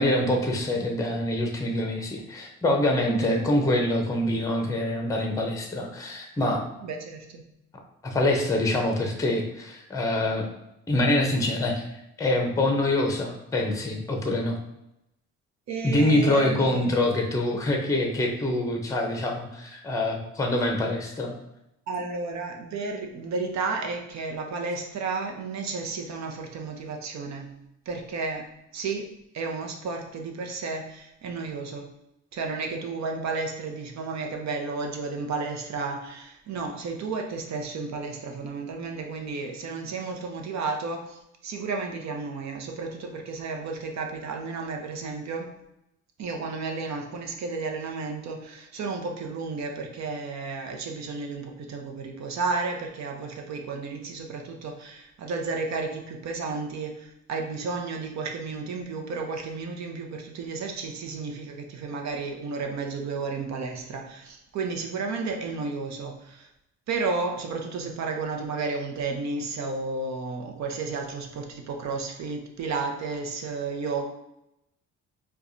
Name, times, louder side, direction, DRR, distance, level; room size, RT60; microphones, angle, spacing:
voice 1, 0.0-6.6 8.0-10.5 10.9-11.9 12.2-14.6 15.8-21.3, left 1 dB, 10° left, 2 dB, 0.6 m, -25 dB
voice 2, 3.1-3.4 6.8-7.4 15.7-17.0 21.9-27.6 27.9-28.5 28.7-29.1 29.3-31.9 32.3-45.6 46.2-66.5 66.9-74.0, right 4 dB, 65° right, 3 dB, 0.7 m, -32 dB
4.6 x 2.3 x 2.6 m, 0.85 s
cardioid pair, 90°, 30 cm